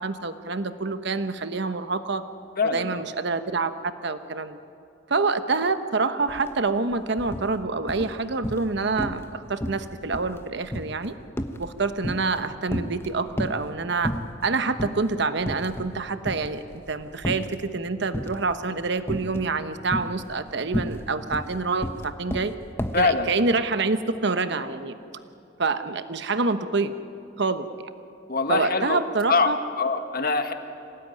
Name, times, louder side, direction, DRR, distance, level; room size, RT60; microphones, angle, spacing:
voice 1, 0.0-2.2 2.6-3.7 4.0-4.6 5.1-11.1 11.6-14.1 14.4-22.5 23.0-24.9 25.6-26.9 27.4-27.7 28.5-29.6, right 3 dB, 65° right, 10 dB, 1.1 m, -27 dB
voice 2, 2.6-3.0 22.9-23.3 28.3-29.0 29.3-29.5 29.8-30.5, left 4 dB, 50° left, 7 dB, 1.7 m, -23 dB
sound 1, 6.3-6.5 6.8-7.5 7.9-8.7 9.0-9.3 9.6-12.4 12.7-13.7 14.0-14.5 14.8-15.0 15.4-16.0 16.2-17.6 18.1-18.5 19.1-19.5 19.9-23.1, equal, 15° left, 1.2 m, -31 dB
26.5 x 18.0 x 9.3 m, 2.8 s
head